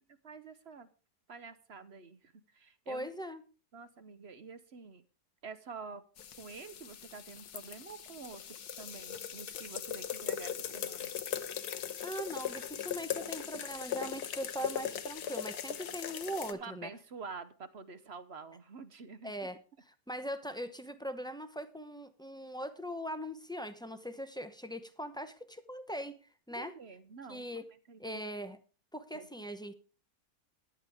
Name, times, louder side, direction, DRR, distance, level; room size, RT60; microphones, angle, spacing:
voice 1, 0.2-0.9 1.3-3.1 3.7-5.0 5.4-6.0 6.4-11.1 16.6-19.3 26.5-27.5 27.9-28.2 29.1-29.3, right 4 dB, 50° right, 11 dB, 1.0 m, -48 dB
voice 2, 2.9-3.4 12.0-16.9 19.2-19.6 19.9-26.2 26.5-26.7 27.3-27.6 28.0-28.6 28.9-29.7, equal, 5° left, 9 dB, 0.6 m, -40 dB
sound 1, 6.2-16.5, left 9 dB, 85° left, 1.5 m, -39 dB
14.5 x 10.5 x 3.5 m, 0.35 s
omnidirectional pair, 1.6 m